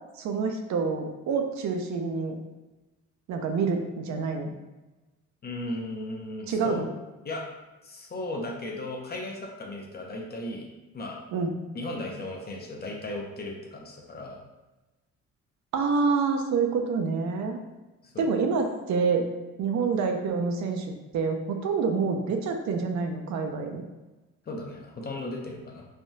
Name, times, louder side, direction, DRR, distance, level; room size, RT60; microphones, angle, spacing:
voice 1, 0.2-2.4 3.3-4.5 6.5-6.9 11.3-11.5 15.7-17.6 18.2-19.3 19.6-20.9 21.1-23.8, right 5 dB, 70° right, 4 dB, 0.5 m, -27 dB
voice 2, 5.4-6.8 7.2-7.5 7.8-10.7 10.9-11.2 11.7-14.4 18.0-18.3 24.5-25.9, left 2 dB, 30° left, 0 dB, 0.6 m, -36 dB
3.3 x 2.2 x 2.6 m, 1.1 s
cardioid pair, 90°, 30 cm